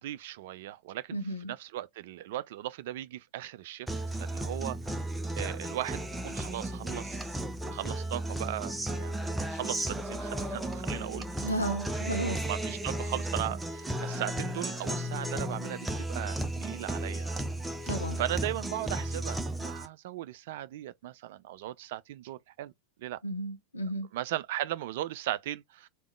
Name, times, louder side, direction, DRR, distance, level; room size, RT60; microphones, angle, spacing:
voice 1, 0.0-3.9 4.2-5.0 5.4-7.4 7.7-11.7 12.0-17.5 17.8-22.7 23.0-23.2 24.1-25.9, right 14 dB, 50° right, 0.4 m, -38 dB
voice 2, 1.1-1.5 11.4-12.4 17.9-18.2 23.2-24.1, right 1 dB, 80° left, 0.9 m, -33 dB
Guitar, 3.9-19.9, right 1 dB, 5° right, 0.6 m, -34 dB
3.5 x 2.9 x 3.3 m
figure-of-eight pair, 90°, 0 cm